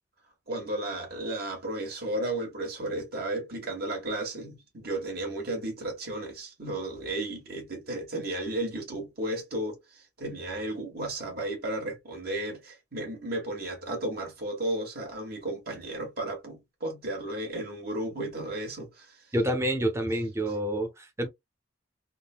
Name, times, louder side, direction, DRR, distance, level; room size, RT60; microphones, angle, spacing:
voice 1, 0.5-19.2, right 1 dB, 55° right, 1.5 m, -34 dB
voice 2, 19.3-21.3, right 1 dB, 15° right, 0.7 m, -28 dB
3.7 x 2.1 x 2.4 m
head